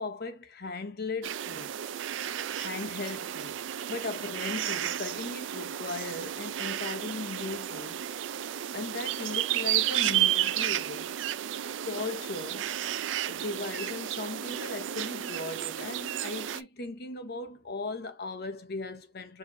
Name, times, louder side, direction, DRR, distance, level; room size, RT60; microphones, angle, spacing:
voice 1, 0.0-1.7 2.6-8.0 8.7-11.2 11.8-12.7 13.3-19.4, left 3 dB, 55° left, 0.8 m, -38 dB
sound 1, 1.2-16.6, right 11 dB, 70° right, 0.4 m, -32 dB
4.8 x 3.0 x 2.7 m
head